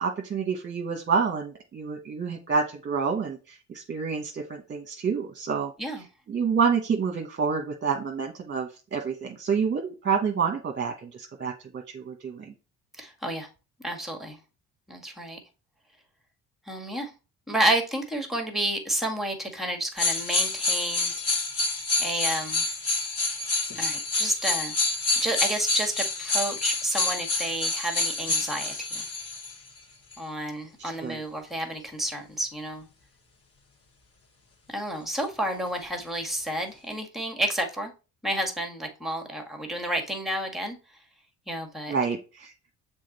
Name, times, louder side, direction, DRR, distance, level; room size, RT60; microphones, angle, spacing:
voice 1, 0.0-5.7 6.3-12.5 31.0-31.2 41.9-42.5, right 6 dB, 35° right, 4 dB, 1.1 m, -28 dB
voice 2, 13.0-13.5 13.8-14.4 14.9-15.4 16.7-17.1 17.5-21.1 22.0-22.6 23.8-24.7 25.2-29.1 30.2-32.8 34.7-37.9 38.2-40.8 41.5-41.9, right 1 dB, ahead, 3 dB, 1.8 m, -30 dB
sound 1, 20.0-29.5 30.1-30.2, left 3 dB, 45° left, 2.4 m, -27 dB
6.4 x 3.7 x 4.1 m, 0.32 s
supercardioid pair, 65°, 34 cm